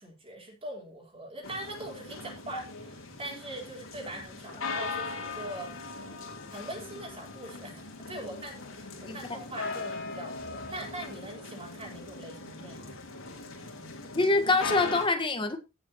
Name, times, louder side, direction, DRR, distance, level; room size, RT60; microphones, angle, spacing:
voice 1, 0.0-5.7 6.5-12.9, right 1 dB, 30° right, 4.3 m, -42 dB
sound 1, 1.4-15.1, left 3 dB, 80° left, 3.2 m, -40 dB
voice 2, 14.1-15.6, left 3 dB, 25° left, 1.5 m, -25 dB
17.0 x 7.4 x 3.0 m
head